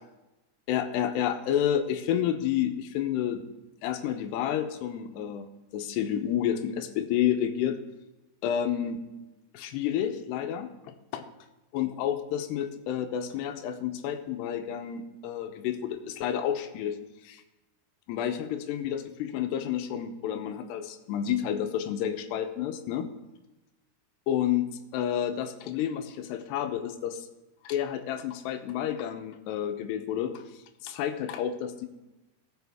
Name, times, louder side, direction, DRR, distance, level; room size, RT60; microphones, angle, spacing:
voice 1, 0.7-3.5 3.8-5.5 5.7-7.8 8.4-9.0 9.5-10.7 11.1-11.2 11.7-17.0 17.2-17.4 18.1-23.1 24.3-27.3 27.6-30.4 30.8-31.9, left 10 dB, 85° left, 8 dB, 2.9 m, -30 dB
18.0 x 6.6 x 3.5 m, 1.0 s
omnidirectional pair, 4.7 m